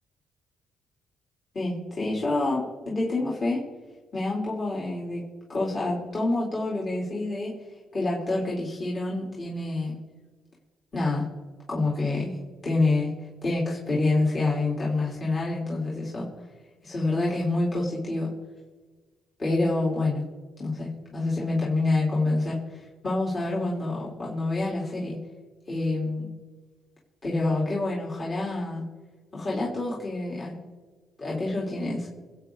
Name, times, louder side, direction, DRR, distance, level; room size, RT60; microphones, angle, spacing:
voice 1, 1.5-3.7 4.1-5.2 5.5-7.6 7.9-10.0 10.9-11.3 11.7-13.1 13.4-16.3 16.8-18.3 19.4-20.3 20.6-22.6 23.0-25.2 25.7-26.3 27.2-28.8 29.3-30.6 31.2-32.1, left 2 dB, 35° left, -5 dB, 4.0 m, -27 dB
26.5 x 9.0 x 4.1 m, 1.3 s
cardioid pair, 90°, 0 cm